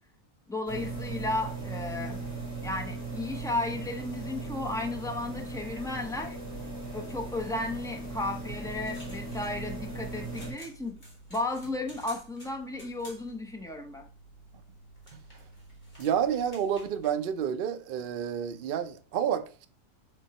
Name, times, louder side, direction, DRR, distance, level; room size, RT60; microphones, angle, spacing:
voice 1, 0.5-2.2 2.6-6.4 6.9-11.0 11.3-14.1, left 2 dB, 5° left, 0.4 m, -34 dB
sound 1, 0.7-10.5, right 2 dB, 15° right, 2.7 m, -38 dB
sound 2, 8.6-17.1, right 1 dB, 30° left, 2.3 m, -51 dB
voice 2, 16.0-19.7, right 8 dB, 75° right, 0.5 m, -29 dB
7.2 x 3.7 x 4.2 m
omnidirectional pair, 1.7 m